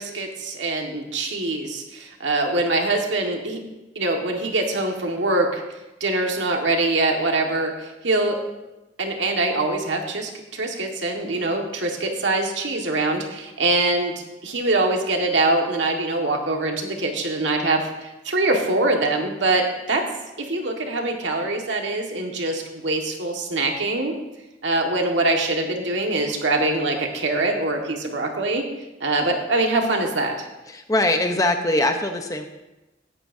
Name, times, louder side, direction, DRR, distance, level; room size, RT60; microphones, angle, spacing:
voice 1, 0.0-3.6 4.0-5.6 6.0-8.4 9.0-14.1 14.4-20.0 20.4-24.2 24.6-28.7 29.0-30.5, right 2 dB, 80° right, 2 dB, 1.8 m, -23 dB
voice 2, 30.7-32.5, left 1 dB, 20° left, 5 dB, 0.9 m, -22 dB
17.0 x 11.0 x 2.8 m, 1.0 s
head